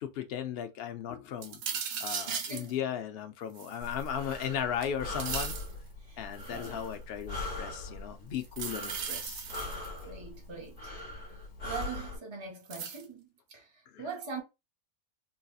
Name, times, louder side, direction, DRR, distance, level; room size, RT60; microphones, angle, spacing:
voice 1, 0.0-1.6 2.0-5.6 6.2-9.5 13.9-14.0, left 9 dB, 65° left, 0.5 m, -36 dB
sound 1, 1.4-2.7 3.6-4.4 4.8-5.7 6.4-6.9 8.4-10.0 11.7-11.8 12.7-13.0, right 7 dB, 75° right, 1.0 m, -37 dB
voice 2, 2.3-2.7 6.1-6.2 6.5-6.8 10.0-10.9 11.6-14.4, right 5 dB, 45° right, 0.4 m, -42 dB
Breathing, 3.8-12.2, left 2 dB, 40° left, 1.2 m, -41 dB
3.9 x 2.7 x 2.3 m
omnidirectional pair, 1.5 m